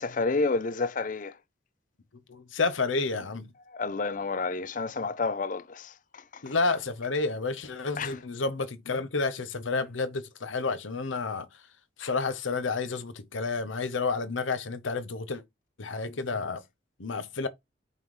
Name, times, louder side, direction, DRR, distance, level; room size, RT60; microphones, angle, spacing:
voice 1, 0.0-1.4 3.7-6.5 8.0-8.2, left 3 dB, 40° left, 0.5 m, -30 dB
voice 2, 2.3-3.5 6.4-11.5 12.0-15.4 15.8-16.6 17.0-17.5, left 4 dB, 80° left, 0.8 m, -30 dB
5.5 x 3.2 x 5.4 m
head